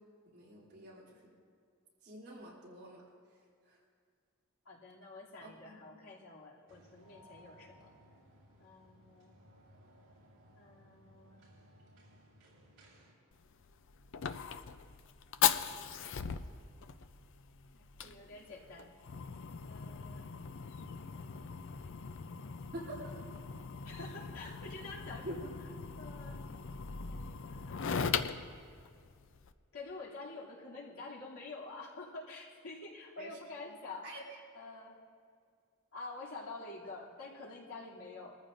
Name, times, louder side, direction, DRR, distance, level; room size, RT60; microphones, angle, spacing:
voice 1, 0.3-1.2 2.0-3.0 3.6-3.8 5.4-6.0 22.7-23.1 25.2-25.4 33.2-33.3 33.6-33.7 34.0-34.2, right 1 dB, 50° right, -4 dB, 3.2 m, -47 dB
voice 2, 4.6-7.9 8.6-9.4 10.5-11.5 15.4-16.0 17.7-18.9 19.6-20.3 23.8-25.5 26.0-26.4 27.1-28.2 29.7-34.1 34.5-35.0 35.9-38.4, left 3 dB, 80° left, -6 dB, 2.7 m, -48 dB
sound 1, 6.7-13.1, equal, 75° right, 4.1 m, -61 dB
Fire, 13.3-29.5, left 7 dB, 60° left, 0.5 m, -39 dB
22.5 x 14.0 x 2.6 m, 2.2 s
head